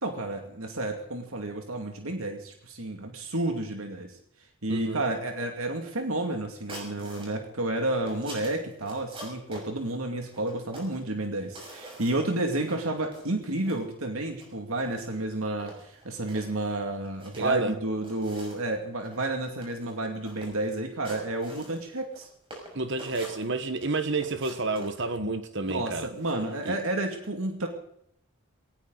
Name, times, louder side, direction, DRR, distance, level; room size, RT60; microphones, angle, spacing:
voice 1, 0.0-4.1 4.6-22.3 25.6-27.7, right 2 dB, 80° right, 2.4 m, -31 dB
voice 2, 4.7-5.0 17.3-17.8 22.7-26.1 26.6-26.8, right 3 dB, 55° right, 1.4 m, -30 dB
sound 1, 6.7-7.3 7.7-9.7 10.3-11.0 11.4-12.3 12.6-12.8 13.1-13.8 14.3-14.5 14.8-15.2 15.6-16.5 17.1-17.7 18.0-18.7 19.0-19.2 19.5-19.9 20.2-20.7 21.0-22.2 22.5-23.9 24.1-25.0, right 1 dB, 25° right, 6.1 m, -44 dB
19.5 x 18.5 x 4.1 m
head